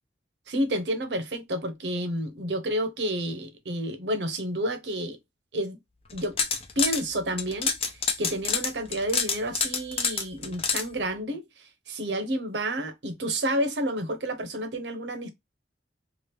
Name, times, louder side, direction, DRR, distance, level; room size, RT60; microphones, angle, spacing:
voice 1, 0.5-5.2 5.5-5.8 6.1-6.4 6.8-7.7 8.2-11.4 11.9-15.3, right 1 dB, 70° right, 0.7 m, -30 dB
sound 1, 6.1-7.0 7.4-10.8, left 5 dB, 35° left, 0.7 m, -27 dB
2.9 x 2.4 x 3.2 m
head